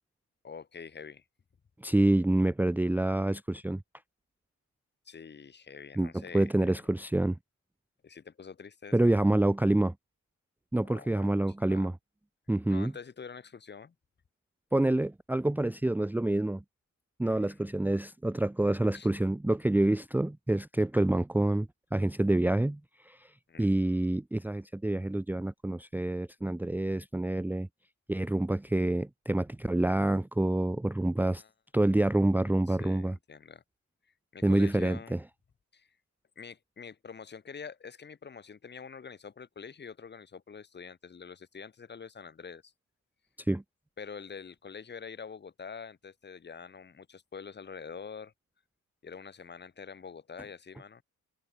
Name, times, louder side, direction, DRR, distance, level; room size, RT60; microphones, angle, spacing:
voice 1, 0.4-1.2 5.1-6.8 8.0-9.3 10.8-11.3 11.6-11.9 12.7-13.9 17.2-17.6 18.9-19.1 23.5-23.7 31.4-31.5 32.7-33.6 34.3-35.1 35.7-35.9 36.4-42.7 44.0-48.3 49.0-51.0, left 6 dB, 35° left, 2.7 m, -46 dB
voice 2, 1.8-3.8 6.0-7.4 8.9-9.9 10.7-11.9 12.5-12.9 14.7-16.6 17.2-22.8 23.1-23.3 23.6-27.7 28.1-31.4 31.7-33.2 34.4-35.2 43.5-43.6, right 1 dB, 5° right, 0.8 m, -27 dB
cardioid pair, 150°, 31 cm